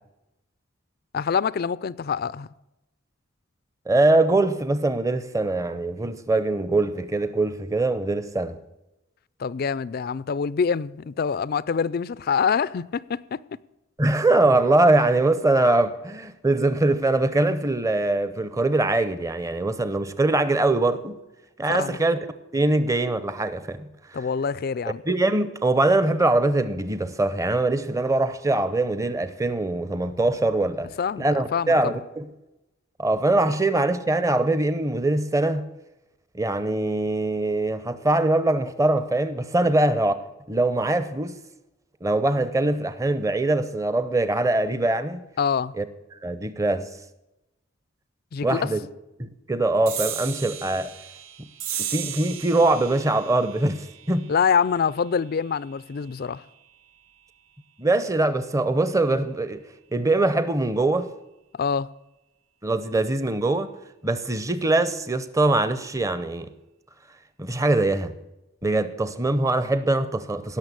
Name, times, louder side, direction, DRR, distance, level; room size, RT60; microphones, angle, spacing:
voice 1, 1.1-2.5 9.4-13.4 21.7-22.0 24.1-25.0 31.0-32.0 45.4-45.7 48.3-48.7 54.3-56.4 61.5-61.9, left 6 dB, 45° left, 0.4 m, -25 dB
voice 2, 3.9-8.6 14.0-21.2 21.6-22.2 22.5-23.9 25.1-30.9 31.2-32.3 33.0-35.7 36.3-40.2 40.5-41.4 42.0-45.2 45.8-45.9 46.2-46.9 48.4-48.8 49.2-50.9 51.8-54.3 57.8-59.6 59.9-61.1 62.6-63.7 64.0-66.5 67.4-68.1 68.6-70.6, right 2 dB, 15° right, 0.7 m, -22 dB
sound 1, 49.9-56.7, right 10 dB, 75° right, 0.9 m, -36 dB
17.0 x 6.7 x 8.2 m
head